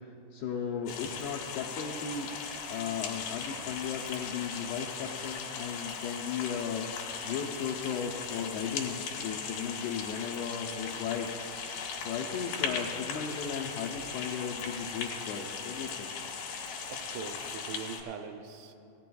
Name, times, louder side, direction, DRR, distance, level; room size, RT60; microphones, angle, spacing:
voice 1, 0.0-2.3 2.7-6.9 7.2-11.3 12.0-16.1, left 7 dB, 85° left, -2 dB, 2.3 m, -36 dB
sound 1, 0.9-18.0, left 6 dB, 65° left, 2.9 m, -38 dB
voice 2, 16.9-18.7, right 6 dB, 80° right, 5 dB, 2.8 m, -42 dB
18.5 x 14.5 x 2.3 m, 2.7 s
omnidirectional pair, 5.4 m